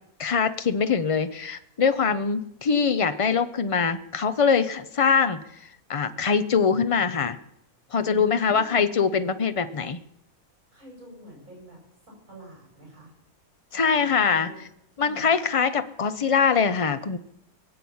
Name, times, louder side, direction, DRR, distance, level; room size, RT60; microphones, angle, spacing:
voice 1, 0.2-5.4 5.9-7.4 7.9-10.0 13.7-14.5 15.0-17.2, left 6 dB, 50° left, 11 dB, 0.4 m, -23 dB
voice 2, 8.2-8.8 10.7-11.8 12.3-13.1 13.7-14.6 14.9-15.3, equal, 65° right, -2 dB, 7.9 m, -46 dB
21.5 x 7.8 x 7.1 m, 0.81 s
omnidirectional pair, 1.5 m